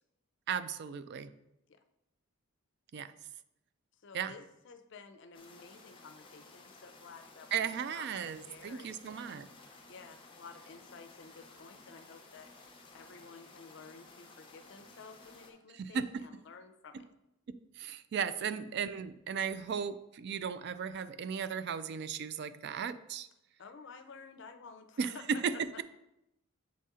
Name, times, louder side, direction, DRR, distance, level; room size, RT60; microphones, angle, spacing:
voice 1, 0.5-1.3 2.9-3.1 4.1-4.3 7.5-9.5 15.7-16.2 17.8-23.3 25.0-25.8, right 7 dB, 55° right, 14 dB, 0.3 m, -36 dB
voice 2, 4.0-8.1 8.3-9.3 9.9-12.5 12.9-17.1 23.6-25.6, left 4 dB, 60° left, 9 dB, 0.5 m, -52 dB
sound 1, 5.3-15.5, left 3 dB, 25° left, 0.8 m, -56 dB
7.4 x 4.1 x 3.7 m, 0.86 s
head